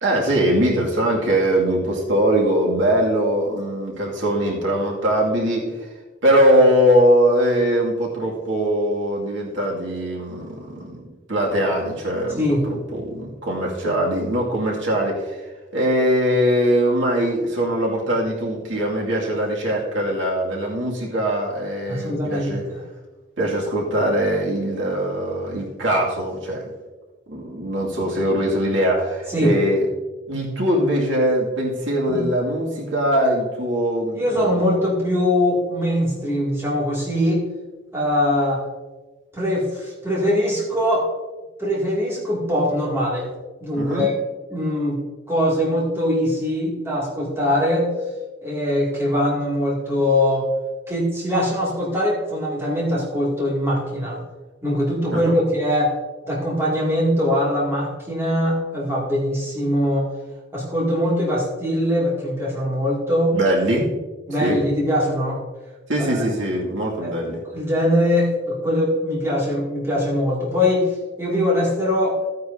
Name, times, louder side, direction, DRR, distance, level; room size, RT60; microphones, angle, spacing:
voice 1, 0.0-5.7 6.2-15.4 15.7-22.6 23.4-26.7 27.3-29.9 30.3-34.7 43.7-44.1 55.1-55.3 63.3-63.9 64.4-64.6 65.9-67.4, equal, 85° right, -2 dB, 2.2 m, -21 dB
voice 2, 12.4-12.7 21.9-22.8 29.3-29.6 32.1-32.3 34.2-37.5 37.9-38.6 39.3-41.1 41.6-43.3 43.6-44.1 44.5-45.0 45.3-47.9 48.4-50.5 50.9-54.2 54.6-56.0 56.2-60.1 60.5-63.4 64.3-65.4 66.0-66.2 67.0-67.1 67.5-70.9 71.2-72.2, left 1 dB, 15° right, -5 dB, 2.3 m, -22 dB
14.5 x 9.5 x 2.7 m, 1.2 s
head